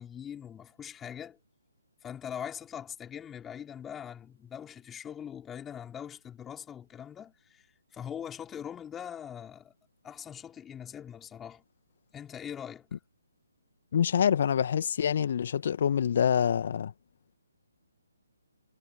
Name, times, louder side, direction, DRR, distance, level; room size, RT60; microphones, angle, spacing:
voice 1, 0.0-1.4 2.0-9.7 10.0-11.6 12.1-12.9, left 9 dB, 10° left, 4.5 m, -42 dB
voice 2, 13.9-16.9, left 8 dB, 45° left, 2.0 m, -26 dB
figure-of-eight pair, 140°, 0 cm